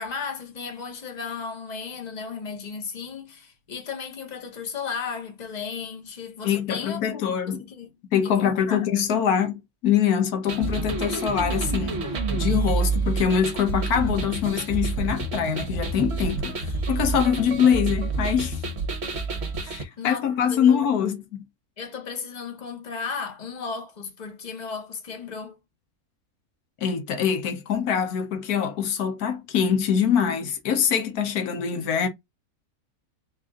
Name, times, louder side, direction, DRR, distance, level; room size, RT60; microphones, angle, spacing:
voice 1, 0.0-7.2 7.5-7.9 8.2-8.8 20.0-20.8 21.8-25.6, left 5 dB, 30° left, 1.1 m, -35 dB
voice 2, 6.4-7.6 8.1-12.0 12.3-18.6 19.6-21.4 26.8-32.1, left 8 dB, 80° left, 1.3 m, -24 dB
sound 1, 10.5-19.8, right 3 dB, 50° right, 1.1 m, -28 dB
4.0 x 2.5 x 3.7 m
omnidirectional pair, 1.6 m